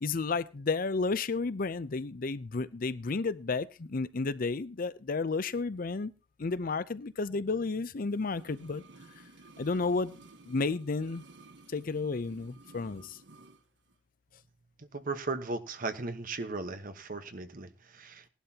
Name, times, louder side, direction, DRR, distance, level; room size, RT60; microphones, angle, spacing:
voice 1, 0.0-6.1 6.4-8.8 9.6-10.2 10.5-11.2 11.7-13.2, left 4 dB, 50° left, 0.6 m, -32 dB
sound 1, 8.1-13.6 13.9-14.0, right 2 dB, 75° right, 1.2 m, -54 dB
voice 2, 14.8-18.2, right 3 dB, 50° right, 1.1 m, -37 dB
18.0 x 11.5 x 2.8 m
head